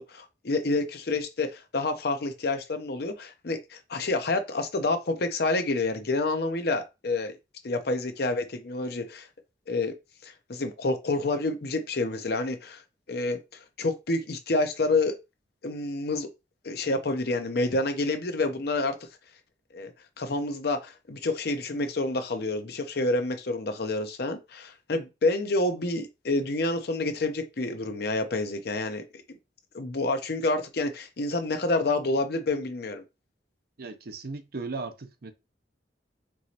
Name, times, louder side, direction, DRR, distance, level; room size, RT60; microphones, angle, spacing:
voice 1, 0.0-7.3 7.6-9.3 9.7-9.9 10.2-12.8 13.1-15.2 15.6-16.3 16.6-19.0 19.7-29.4 29.7-33.0, left 2 dB, 60° left, 0.7 m, -28 dB
voice 2, 33.8-35.3, right 3 dB, 60° right, 0.6 m, -37 dB
4.6 x 3.0 x 2.8 m
head